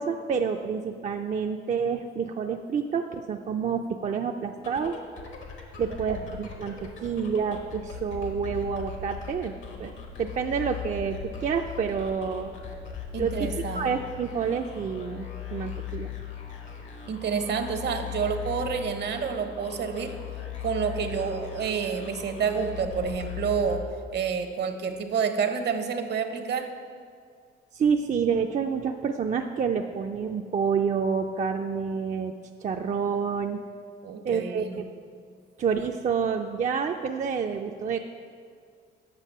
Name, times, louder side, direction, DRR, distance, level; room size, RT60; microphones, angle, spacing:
voice 1, 0.0-5.0 5.8-9.9 10.2-12.5 13.2-13.5 13.7-16.1 27.7-32.3 32.6-33.6 34.2-34.9 35.6-38.0, right 6 dB, 40° right, 4 dB, 0.4 m, -28 dB
sound 1, 4.6-24.3, left 8 dB, 75° left, 1.3 m, -39 dB
voice 2, 13.1-13.9 17.1-20.1 20.6-23.8 24.1-26.7 34.0-34.8, right 6 dB, 60° right, 8 dB, 0.8 m, -29 dB
8.3 x 5.7 x 5.4 m, 2.1 s
cardioid pair, 90°, 20 cm